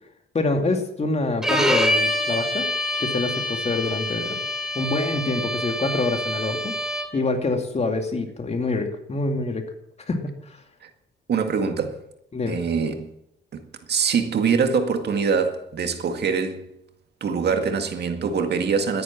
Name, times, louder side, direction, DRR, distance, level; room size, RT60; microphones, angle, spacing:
voice 1, 0.3-2.7 3.0-4.4 4.7-6.7 7.1-9.6 10.1-10.4 12.3-12.6, left 3 dB, 35° left, 2.6 m, -26 dB
Bowed string instrument, 1.4-7.3, left 1 dB, 5° right, 2.9 m, -26 dB
voice 2, 11.3-12.0 12.5-13.1 13.5-13.6 13.9-16.7 17.2-19.0, right 5 dB, 55° right, 2.0 m, -24 dB
12.5 x 10.5 x 7.4 m
cardioid pair, 90°, 20 cm